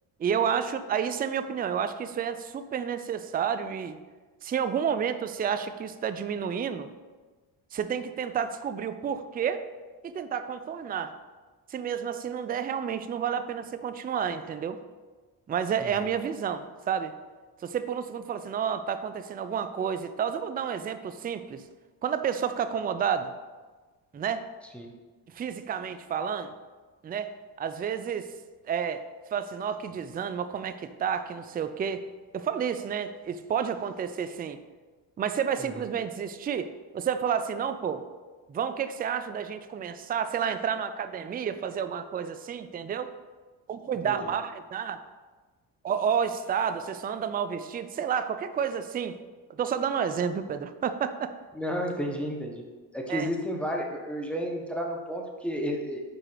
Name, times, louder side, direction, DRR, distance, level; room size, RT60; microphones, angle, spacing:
voice 1, 0.2-4.0 4.4-6.9 7.7-9.6 10.0-11.1 11.7-14.8 15.5-17.1 17.6-21.6 22.0-23.3 24.1-24.4 25.3-26.5 27.0-27.3 27.6-28.3 28.7-29.0 29.3-32.0 32.3-34.6 35.2-38.0 38.5-43.1 43.7-45.0 45.8-49.2 49.5-51.3 53.1-53.3, right 7 dB, 20° right, 11 dB, 0.3 m, -30 dB
voice 2, 51.5-52.7 52.9-56.0, equal, ahead, 0 dB, 1.1 m, -32 dB
4.8 x 4.8 x 4.6 m, 1.3 s
supercardioid pair, 60°, 50 cm